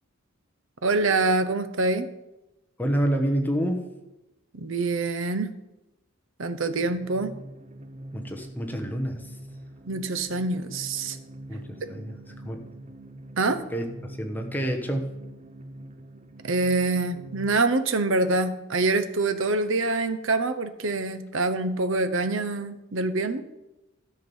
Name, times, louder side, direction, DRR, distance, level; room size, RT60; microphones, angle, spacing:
voice 1, 0.8-2.1 4.5-5.5 6.4-7.3 9.9-11.2 13.4-13.6 16.4-23.4, right 3 dB, 65° right, 11 dB, 0.8 m, -25 dB
voice 2, 2.8-3.9 8.1-9.3 11.5-12.1 12.4-12.6 13.7-15.2, right 1 dB, 10° left, 3 dB, 1.0 m, -28 dB
sound 1, 6.7-17.6, right 1 dB, 30° right, 0.6 m, -44 dB
13.5 x 6.0 x 5.4 m, 0.97 s
head